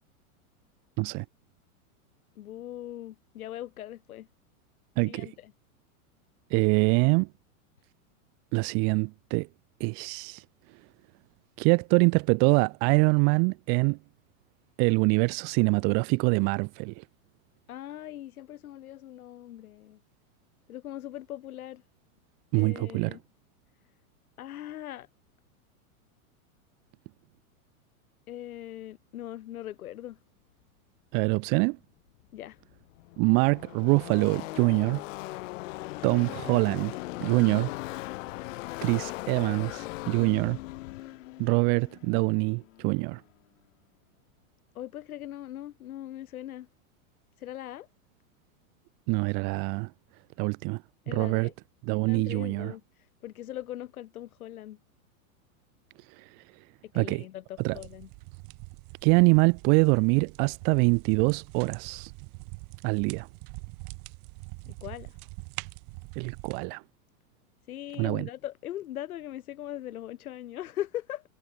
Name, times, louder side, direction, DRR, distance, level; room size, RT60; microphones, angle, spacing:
voice 1, 2.4-4.3 5.0-5.5 17.7-20.0 20.7-21.8 22.5-23.2 24.4-25.1 28.3-30.2 32.3-32.6 44.7-46.7 47.4-47.9 51.1-51.5 52.1-54.8 56.9-58.1 64.7-65.2 67.7-71.2, left 13 dB, 80° left, 3.3 m, -40 dB
voice 2, 5.0-5.3 6.5-7.3 8.5-9.5 9.8-10.4 11.6-14.0 14.8-17.0 22.5-23.2 31.1-31.8 33.2-35.0 36.0-37.7 38.8-40.6 41.4-43.2 49.1-49.9 50.4-50.8 51.1-51.5 51.8-52.7 56.2-56.3 56.9-57.2 57.6-57.8 59.0-62.1 62.8-63.3 66.2-66.8 68.0-68.3, right 36 dB, 25° right, 0.4 m, -24 dB
Car passing by / Race car auto racing, 32.2-32.3 32.5-43.1, left 20 dB, 60° left, 5.4 m, -39 dB
sound 1, 57.6-66.6, right 40 dB or more, 50° right, 4.2 m, -44 dB
hypercardioid pair, 135°, 43 cm